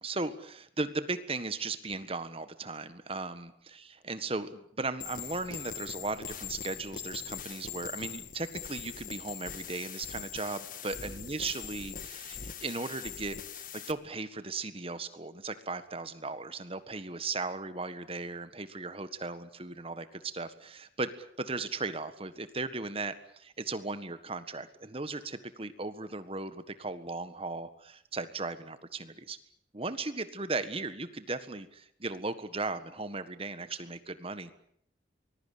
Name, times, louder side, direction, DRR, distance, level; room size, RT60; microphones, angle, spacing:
voice 1, 0.0-29.4 29.7-34.5, right 3 dB, 30° right, 12 dB, 1.6 m, -37 dB
sound 1, 5.0-13.9, left 8 dB, 50° left, 1.7 m, -42 dB
25.0 x 21.0 x 8.6 m, 0.69 s
head